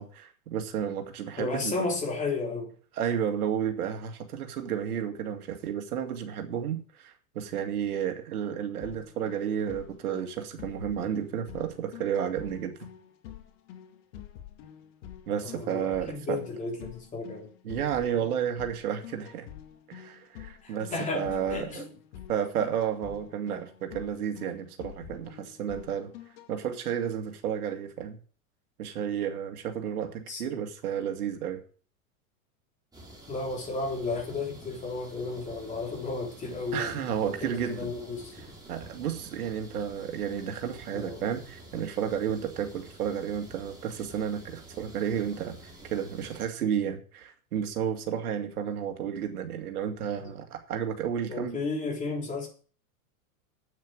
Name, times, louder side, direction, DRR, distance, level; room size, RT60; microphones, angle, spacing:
voice 1, 0.0-1.7 2.9-12.7 15.3-16.4 17.6-19.5 19.9-21.8 22.3-26.1 26.5-28.2 28.8-31.6 36.7-37.9 38.7-51.6, right 8 dB, 90° right, 2.3 m, -32 dB
voice 2, 1.4-2.7 15.5-17.5 20.6-21.8 30.3-30.4 33.3-38.3 40.9-41.3 50.2-50.3 51.3-52.5, left 3 dB, 15° left, 3.5 m, -33 dB
sound 1, 8.8-26.5, left 10 dB, 55° left, 2.1 m, -47 dB
sound 2, 32.9-46.5, right 1 dB, 10° right, 3.1 m, -49 dB
8.8 x 7.4 x 7.7 m
supercardioid pair, 150°, 43 cm